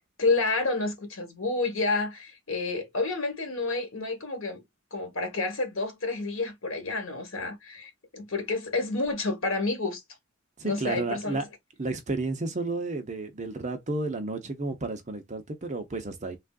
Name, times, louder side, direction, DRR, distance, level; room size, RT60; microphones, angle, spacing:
voice 1, 0.2-4.6 4.9-10.0 10.6-11.5, left 3 dB, 80° left, 1.2 m, -29 dB
voice 2, 10.6-11.4 11.8-16.4, right 3 dB, 35° right, 0.6 m, -32 dB
3.4 x 2.4 x 2.3 m
head